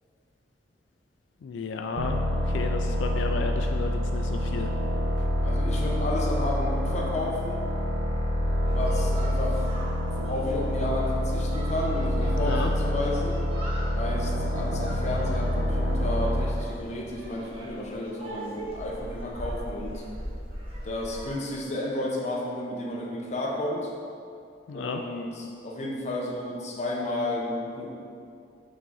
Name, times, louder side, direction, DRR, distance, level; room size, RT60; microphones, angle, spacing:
voice 1, 1.4-4.7 12.4-12.7 24.7-25.0, left 5 dB, 90° left, 5 dB, 0.3 m, -33 dB
sound 1, 2.0-16.7, left 1 dB, 90° right, 0.9 m, -27 dB
voice 2, 5.4-7.7 8.7-9.7 10.2-13.4 14.0-20.0 20.8-23.9 24.7-27.9, left 1 dB, 40° left, -2 dB, 0.9 m, -32 dB
sound 2, 8.7-21.4, right 1 dB, 30° right, 1.3 m, -41 dB
5.4 x 3.8 x 5.4 m, 2.4 s
head